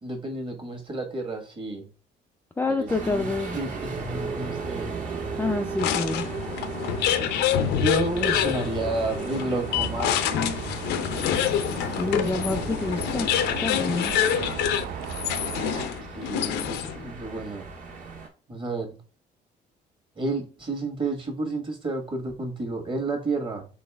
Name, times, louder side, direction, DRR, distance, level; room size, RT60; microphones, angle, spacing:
voice 1, 0.0-1.9 2.6-4.9 7.7-10.4 16.1-17.7 18.5-19.0 20.1-23.7, right 2 dB, 30° right, 1.5 m, -31 dB
voice 2, 2.6-3.6 5.4-6.2 11.9-13.3 13.6-14.1, left 3 dB, 10° left, 0.4 m, -27 dB
sound 1, 2.9-18.3, right 4 dB, 50° right, 1.6 m, -36 dB
sound 2, 5.8-17.1, left 9 dB, 85° left, 0.6 m, -27 dB
sound 3, 10.4-15.9, right 8 dB, 75° right, 0.5 m, -37 dB
4.2 x 3.2 x 3.4 m
cardioid pair, 110°, 17 cm